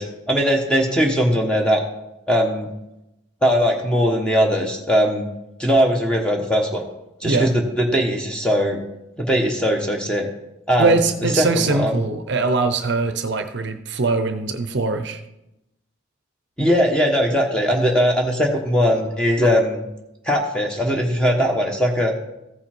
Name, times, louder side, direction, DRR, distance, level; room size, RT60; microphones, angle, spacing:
voice 1, 0.0-1.8 2.3-2.7 3.4-5.3 5.6-6.8 7.2-8.8 9.2-10.3 10.7-11.0 11.4-12.0 16.6-19.8 20.2-22.1, equal, 5° left, 1 dB, 1.2 m, -20 dB
voice 2, 10.8-15.2, right 3 dB, 55° right, 8 dB, 0.6 m, -22 dB
14.5 x 5.5 x 4.5 m, 0.91 s
head